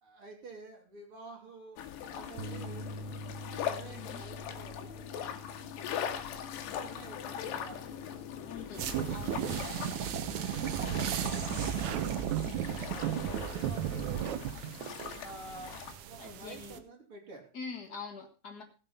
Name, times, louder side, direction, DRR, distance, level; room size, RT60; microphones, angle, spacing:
voice 1, 0.0-2.9 3.5-5.0 6.7-9.2 10.4-12.3 12.6-14.3 15.2-17.5 18.5-18.6, right 3 dB, 35° right, 1 dB, 3.5 m, -50 dB
sound 1, 1.8-16.0, left 9 dB, 75° left, 3.4 m, -41 dB
sound 2, 2.4-8.6, equal, 70° right, 2.4 m, -46 dB
voice 2, 8.5-9.7 16.2-16.8 17.5-18.6, left 5 dB, 55° left, 4 dB, 1.1 m, -44 dB
sound 3, 8.7-16.8, right 10 dB, 90° right, 1.6 m, -35 dB
16.5 x 7.7 x 5.6 m, 0.34 s
omnidirectional pair, 5.0 m